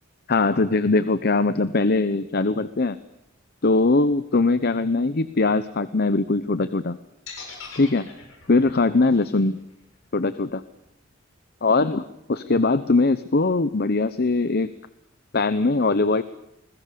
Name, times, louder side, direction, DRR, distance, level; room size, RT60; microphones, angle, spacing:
voice 1, 0.3-3.0 3.6-7.0 7.8-8.1 8.5-9.6 10.1-10.6 11.6-14.7 15.3-16.2, left 3 dB, 50° left, 14 dB, 0.8 m, -21 dB
sound 1, 7.3-11.3, left 5 dB, 80° left, 6.9 m, -43 dB
29.0 x 21.0 x 6.9 m, 0.82 s
head